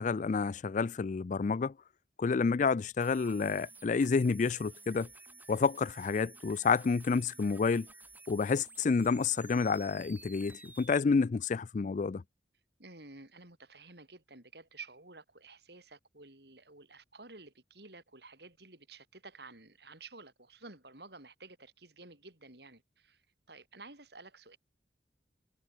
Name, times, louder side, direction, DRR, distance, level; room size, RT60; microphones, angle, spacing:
voice 1, 0.0-1.7 2.2-5.1 5.5-7.9 8.3-12.2, left 5 dB, 45° left, 0.4 m, -29 dB
sound 1, 3.0-11.0, right 3 dB, 10° right, 4.1 m, -53 dB
voice 2, 12.8-24.6, right 3 dB, 60° right, 6.1 m, -52 dB
head